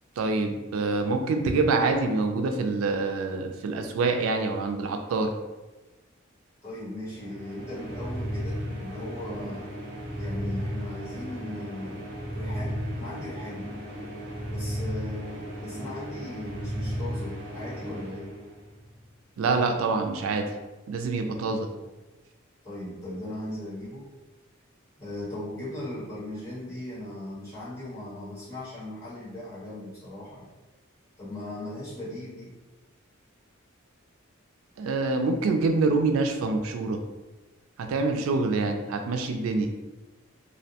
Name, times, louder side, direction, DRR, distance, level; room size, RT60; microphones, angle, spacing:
voice 1, 0.2-5.3 19.4-20.5 20.9-21.7 34.8-37.0 37.8-39.7, right 3 dB, 90° right, 5 dB, 0.3 m, -26 dB
voice 2, 6.6-9.7 10.2-13.7 14.5-18.3 22.6-24.1 25.0-30.5 31.2-32.5, left 1 dB, 15° left, -11 dB, 1.3 m, -38 dB
sound 1, 7.1-18.9, equal, 60° right, 0.7 m, -35 dB
2.5 x 2.1 x 2.7 m, 1.1 s
head